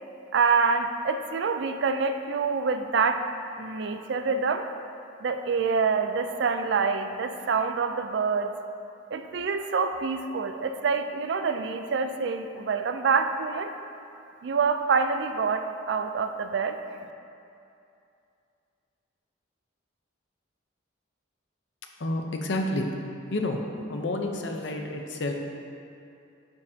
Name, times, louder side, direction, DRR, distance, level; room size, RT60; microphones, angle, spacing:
voice 1, 0.3-3.2 3.6-4.7 5.2-8.5 9.1-13.7 14.4-16.8, right 5 dB, 60° right, 7 dB, 0.4 m, -26 dB
voice 2, 22.0-22.9 23.3-23.6 23.9-25.3, left 2 dB, 65° left, 3 dB, 0.6 m, -29 dB
9.6 x 5.2 x 2.7 m, 2.6 s
head